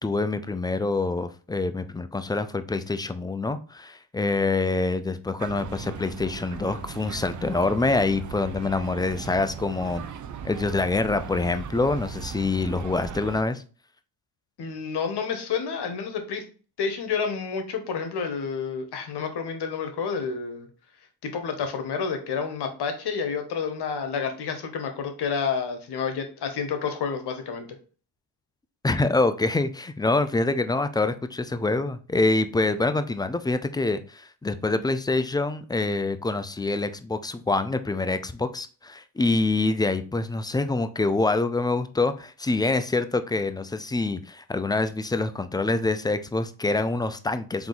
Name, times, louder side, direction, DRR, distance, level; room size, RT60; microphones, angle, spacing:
voice 1, 0.0-10.0 10.4-13.6 28.8-47.7, left 3 dB, 10° left, 10 dB, 0.3 m, -26 dB
sound 1, 5.4-13.4, right 7 dB, 45° right, 0.6 m, -38 dB
voice 2, 14.6-16.4 16.8-20.7 21.2-27.7, left 6 dB, 60° left, 6 dB, 1.1 m, -29 dB
3.6 x 2.9 x 4.0 m, 0.37 s
supercardioid pair, 60°, 44 cm